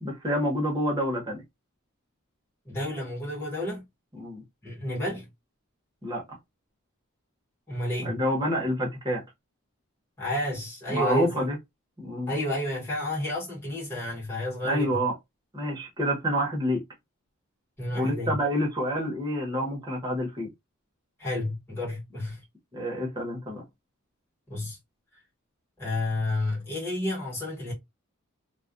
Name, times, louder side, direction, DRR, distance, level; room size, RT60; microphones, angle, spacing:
voice 1, 0.0-1.4 4.1-4.4 6.0-6.2 8.0-9.2 10.9-11.6 12.0-12.3 14.6-15.1 15.5-16.8 17.9-20.5 22.7-23.6, equal, 20° right, 0.8 m, -28 dB
voice 2, 2.6-3.8 4.6-5.3 7.7-8.2 10.2-11.5 12.3-15.0 17.8-18.4 21.2-22.4 24.5-24.8 25.8-27.7, left 1 dB, 10° left, 1.1 m, -30 dB
2.3 x 2.1 x 2.5 m
head